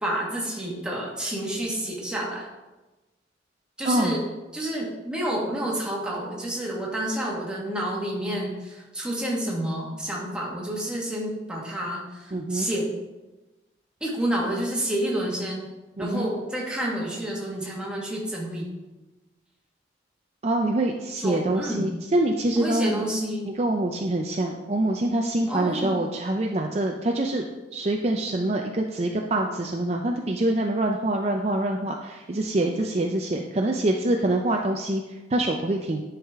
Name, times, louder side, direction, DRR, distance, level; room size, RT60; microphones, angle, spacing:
voice 1, 0.0-2.5 3.8-4.2 4.5-12.9 14.0-15.7 16.0-18.7 21.2-21.9 22.5-23.6 25.5-26.0, right 1 dB, 5° right, -4 dB, 1.6 m, -29 dB
voice 2, 3.8-4.2 12.3-12.7 16.0-16.3 20.4-23.0 23.5-27.4 27.7-35.0 35.3-36.0, right 1 dB, 35° right, 1 dB, 0.5 m, -25 dB
10.5 x 4.9 x 3.6 m, 1.1 s
head